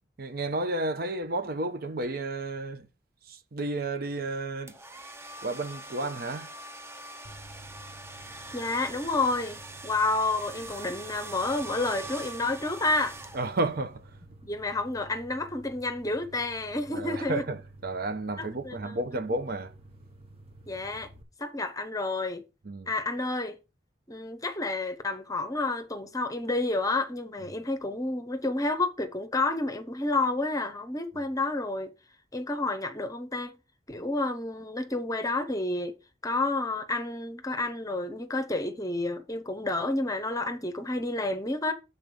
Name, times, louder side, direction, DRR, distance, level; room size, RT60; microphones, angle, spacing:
voice 1, 0.2-2.9 3.2-4.8 5.4-6.5 13.3-14.2 16.9-19.7 22.6-22.9, right 2 dB, 60° right, 0.8 m, -32 dB
sound 1, 4.7-13.8, right 2 dB, 15° right, 0.6 m, -43 dB
sound 2, 7.2-21.2, right 1 dB, 35° right, 1.0 m, -51 dB
voice 2, 8.5-13.2 14.4-17.4 18.4-18.8 20.7-21.1 21.4-22.4 22.9-23.5 24.1-31.9 32.3-33.5 33.9-36.0 36.2-41.7, left 2 dB, 20° left, 0.9 m, -30 dB
6.6 x 4.1 x 6.2 m
head